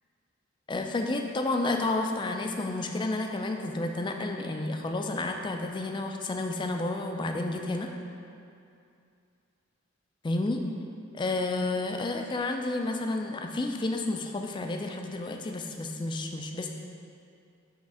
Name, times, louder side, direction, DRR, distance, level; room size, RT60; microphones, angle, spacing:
voice 1, 0.7-7.9 10.2-10.6 11.1-16.7, left 2 dB, 25° left, 4 dB, 0.3 m, -31 dB
6.4 x 3.2 x 4.8 m, 2.5 s
head